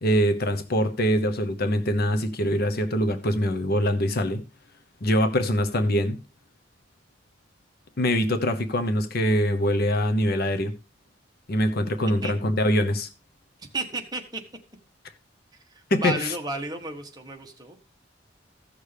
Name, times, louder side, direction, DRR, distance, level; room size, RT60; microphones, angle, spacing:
voice 1, 0.0-4.4 5.0-6.2 8.0-10.7 11.5-13.1 15.9-16.3, equal, 55° left, 0.9 m, -23 dB
voice 2, 13.6-14.4 15.7-17.8, right 3 dB, 20° right, 1.3 m, -33 dB
15.0 x 6.5 x 3.4 m
head